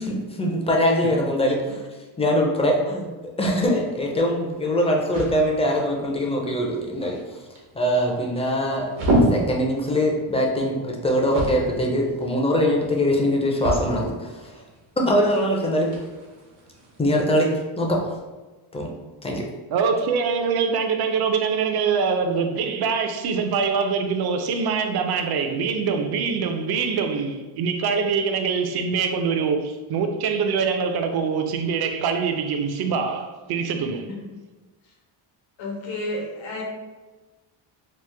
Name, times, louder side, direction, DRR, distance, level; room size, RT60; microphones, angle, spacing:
voice 1, 0.0-1.8 2.2-7.2 7.7-8.9 9.3-14.6 15.0-15.9 17.0-18.0 18.7-18.9 19.2-19.5, equal, 15° left, 0.4 m, -22 dB
sound 1, 3.8-17.2, right 1 dB, 85° right, 0.9 m, -31 dB
voice 2, 19.7-34.1, right 5 dB, 55° right, 0.5 m, -24 dB
voice 3, 35.6-36.6, left 2 dB, 70° left, 1.0 m, -31 dB
3.0 x 2.0 x 3.2 m
cardioid pair, 110°, 47 cm